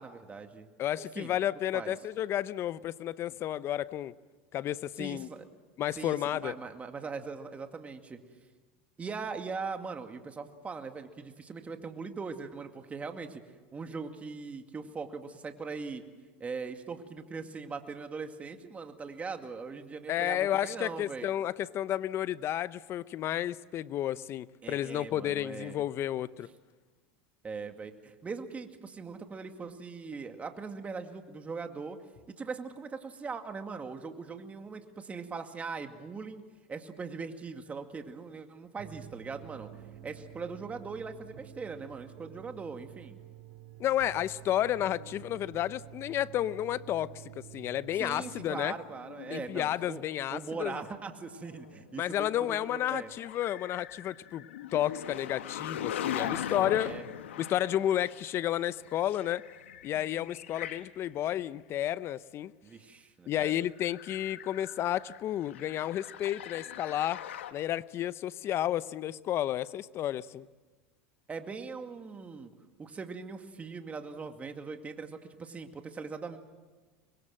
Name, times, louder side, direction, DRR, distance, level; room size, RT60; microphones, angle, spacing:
voice 1, 0.0-0.7 1.0-1.3 1.7-1.9 3.3-3.4 5.0-5.4 5.9-8.2 9.0-13.4 13.7-16.0 16.4-21.3 24.6-25.8 27.4-32.0 32.4-36.4 36.7-39.7 40.0-43.2 47.9-50.0 50.3-53.1 56.1-57.1 62.6-63.5 71.3-72.5 72.8-76.4, right 4 dB, 20° right, 2.3 m, -40 dB
voice 2, 0.8-4.1 4.5-5.3 5.8-6.5 20.1-26.5 43.8-47.1 47.5-48.7 49.3-50.8 52.0-54.5 54.7-56.9 57.4-59.4 59.8-62.5 63.3-67.2 67.5-70.5, left 12 dB, 40° left, 0.7 m, -31 dB
sound 1, 38.8-48.5, right 13 dB, 60° right, 2.7 m, -49 dB
sound 2, 48.1-49.9 51.0-51.9 52.9-60.9 61.3-61.4 63.8-67.5, left 10 dB, 85° left, 1.3 m, -41 dB
25.0 x 22.0 x 7.7 m
hypercardioid pair, 100°, 6 cm